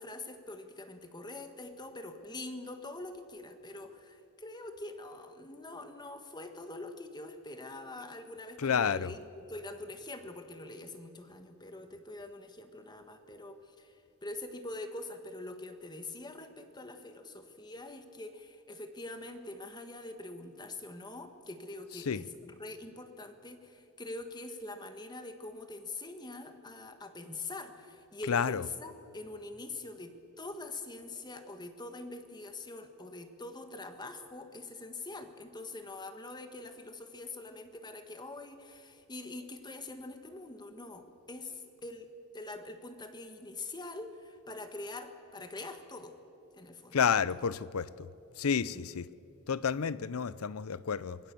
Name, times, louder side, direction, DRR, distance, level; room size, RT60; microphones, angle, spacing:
voice 1, 0.0-42.1 42.3-46.1 46.5-47.0 48.6-48.9, left 2 dB, 20° left, 1.5 m, -44 dB
voice 2, 8.6-9.1 22.1-22.2 28.3-28.6 46.9-47.9 48.4-49.1 49.5-51.2, left 6 dB, 80° left, 0.6 m, -30 dB
25.5 x 21.5 x 6.9 m
head